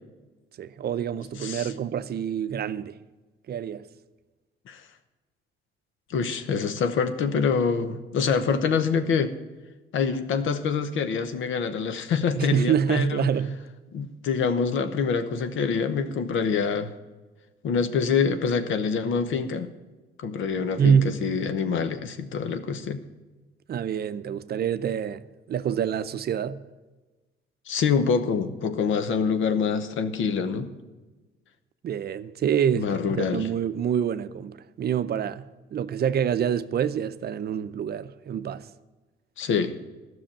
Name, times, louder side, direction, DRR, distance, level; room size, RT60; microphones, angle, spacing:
voice 1, 0.6-3.0 3.5-3.8 12.4-13.6 20.8-21.2 23.7-26.6 31.8-38.7, right 8 dB, 55° right, 0.6 m, -26 dB
voice 2, 6.1-9.3 9.9-13.3 13.9-16.9 17.6-19.7 20.2-23.0 27.7-30.7 32.8-33.4 39.4-39.7, left 5 dB, 80° left, 1.0 m, -26 dB
12.5 x 6.2 x 8.8 m
cardioid pair, 90°, 20 cm